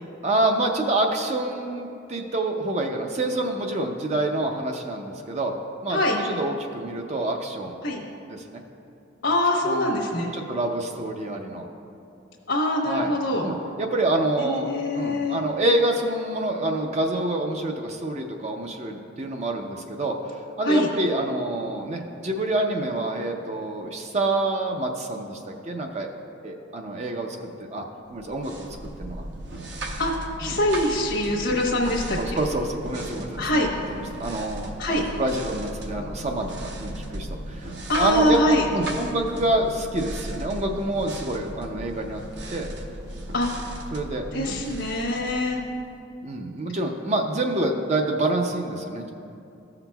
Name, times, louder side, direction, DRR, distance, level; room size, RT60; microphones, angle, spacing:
voice 1, 0.2-5.5 5.8-7.8 8.3-8.6 9.6-10.0 10.3-11.7 12.9-13.1 13.4-20.2 20.6-26.1 26.4-27.8 28.1-28.7 29.0-29.2 30.4-30.6 32.2-42.2 42.5-42.7 43.9-44.6 46.2-49.1, right 1 dB, 35° right, 3 dB, 0.5 m, -27 dB
voice 2, 9.2-10.3 12.5-13.4 14.5-15.4 20.6-20.9 30.0-30.1 30.4-32.2 33.4-33.7 34.8-35.0 37.9-38.6 43.3-43.6 44.3-45.6, left 1 dB, 70° left, -4 dB, 1.0 m, -23 dB
sound 1, 28.1-46.0, right 1 dB, 60° right, 0.8 m, -36 dB
15.0 x 5.8 x 2.3 m, 2.7 s
head